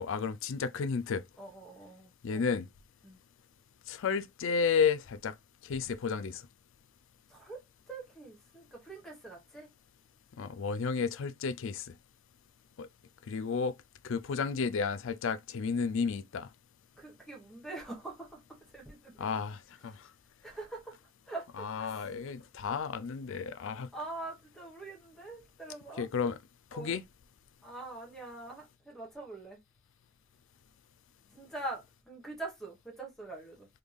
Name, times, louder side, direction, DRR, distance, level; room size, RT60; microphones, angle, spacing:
voice 1, 0.0-1.2 2.2-2.7 3.9-5.3 5.6-6.4 10.4-11.9 12.8-12.9 13.3-13.7 14.0-16.5 19.2-20.0 21.6-23.9 26.0-26.4 26.7-27.0, left 5 dB, 55° left, 0.4 m, -32 dB
voice 2, 1.4-2.4 3.0-3.2 7.3-9.7 16.9-19.1 20.4-21.0 21.3-22.1 23.9-26.1 26.7-26.9 27.6-29.6 31.3-33.7, right 2 dB, ahead, 1.2 m, -44 dB
3.5 x 3.3 x 2.3 m
head